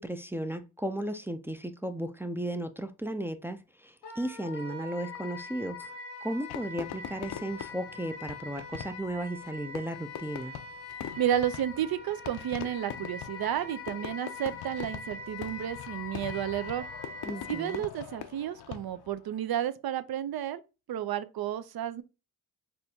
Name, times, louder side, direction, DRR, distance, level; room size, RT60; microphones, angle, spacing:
voice 1, 0.0-5.9 6.2-10.6 17.2-17.8, right 1 dB, 5° right, 0.4 m, -35 dB
Wind instrument woodwind instrument, 4.0-17.8, left 4 dB, 85° left, 1.0 m, -43 dB
Fireworks, 6.5-19.2, left 10 dB, 70° left, 0.5 m, -43 dB
voice 2, 11.2-16.8 17.5-20.6 20.9-22.0, right 10 dB, 65° right, 0.5 m, -32 dB
4.2 x 2.3 x 2.7 m
cardioid pair, 50°, 40 cm